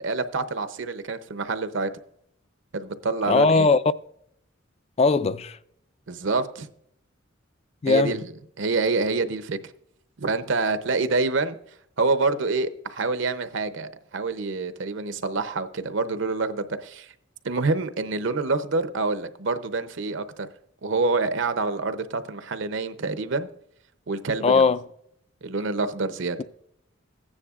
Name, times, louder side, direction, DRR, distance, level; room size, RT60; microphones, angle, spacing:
voice 1, 0.0-1.9 2.7-3.7 6.1-6.7 7.9-8.2 8.6-9.6 10.2-11.6 12.0-17.1 17.4-20.5 20.8-23.5 24.1-24.6 25.4-26.4, right 3 dB, 65° right, 0.7 m, -27 dB
voice 2, 3.3-3.8 5.0-5.6 7.8-8.2 24.4-24.8, left 4 dB, 30° left, 0.3 m, -19 dB
15.0 x 9.8 x 2.4 m
head